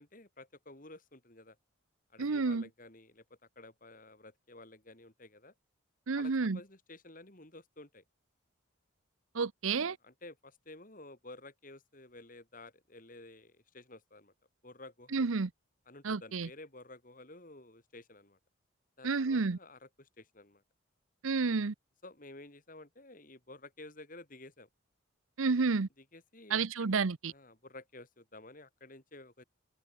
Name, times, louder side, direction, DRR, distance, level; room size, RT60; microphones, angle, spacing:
voice 1, 0.0-1.6 2.1-5.5 6.1-8.0 10.0-14.3 14.6-15.3 15.9-18.4 19.0-20.6 22.0-24.7 26.0-27.0 27.3-29.4, left 2 dB, 40° left, 3.0 m, -52 dB
voice 2, 2.2-2.6 6.1-6.6 9.3-10.0 15.1-15.5 16.0-16.5 19.0-19.6 21.2-21.7 25.4-25.9 26.5-27.3, right 4 dB, 80° right, 0.7 m, -30 dB
head